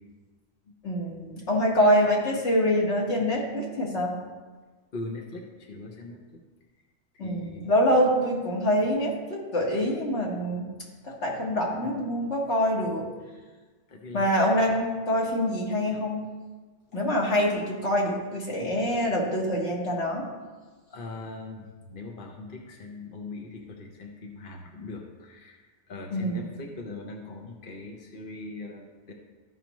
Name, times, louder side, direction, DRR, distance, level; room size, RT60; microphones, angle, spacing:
voice 1, 0.8-4.1 7.2-10.7 11.0-13.1 14.1-16.2 16.9-20.3 26.1-26.6, equal, 90° left, -3 dB, 1.9 m, -25 dB
voice 2, 4.9-6.2 7.2-7.8 13.9-14.2 20.9-25.6 25.9-29.1, left 3 dB, 55° left, 1 dB, 1.1 m, -40 dB
13.5 x 5.8 x 3.1 m, 1.4 s
omnidirectional pair, 1.1 m